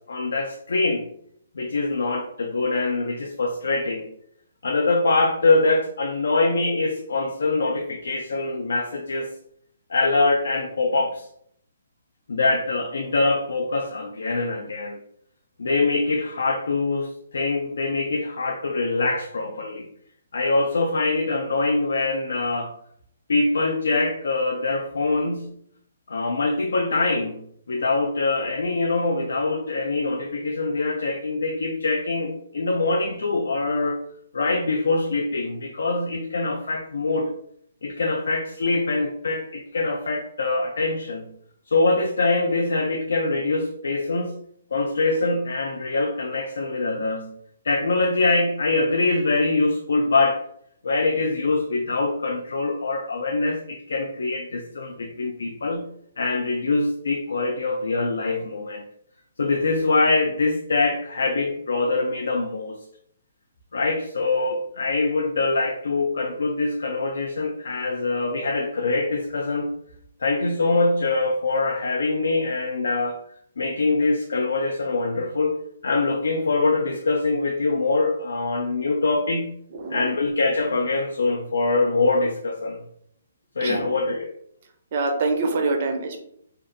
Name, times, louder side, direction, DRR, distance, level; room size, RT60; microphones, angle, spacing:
voice 1, 0.1-1.1 1.6-4.1 4.6-9.3 9.9-11.3 12.3-15.0 15.6-19.9 20.3-22.7 23.3-25.5 26.1-34.0 34.3-37.3 37.8-41.3 41.7-44.4 44.7-47.3 47.6-50.4 50.8-55.9 56.2-58.8 59.4-62.8 63.7-69.7 70.2-73.2 73.6-79.5 79.9-82.8 83.6-84.3, left 3 dB, 85° left, 2 dB, 0.3 m, -24 dB
voice 2, 84.9-86.2, right 3 dB, 35° right, 4 dB, 0.4 m, -25 dB
2.5 x 2.2 x 2.4 m, 0.68 s
hypercardioid pair, 175°, 0 cm